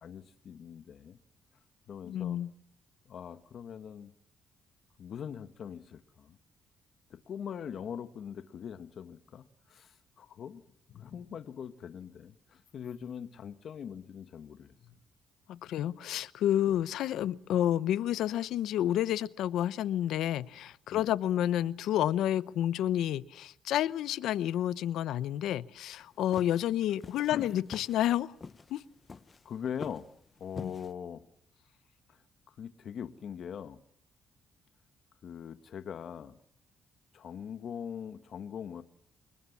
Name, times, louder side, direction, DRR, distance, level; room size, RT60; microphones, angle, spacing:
voice 1, 0.0-1.2 1.9-2.4 3.0-4.1 5.0-6.4 7.1-10.6 10.9-15.0 16.7-16.8 20.9-21.1 27.3-27.5 29.4-30.1 30.4-31.2 32.1-32.2 32.5-33.8 35.2-36.4 37.1-38.8, left 8 dB, 60° left, 1.4 m, -42 dB
voice 2, 2.1-2.5 15.5-28.3 28.7-28.8 30.6-30.7, left 11 dB, 80° left, 0.9 m, -30 dB
sound 1, 25.9-30.9, left 4 dB, 35° left, 1.1 m, -46 dB
26.5 x 21.5 x 7.3 m
cardioid pair, 90°, 0 cm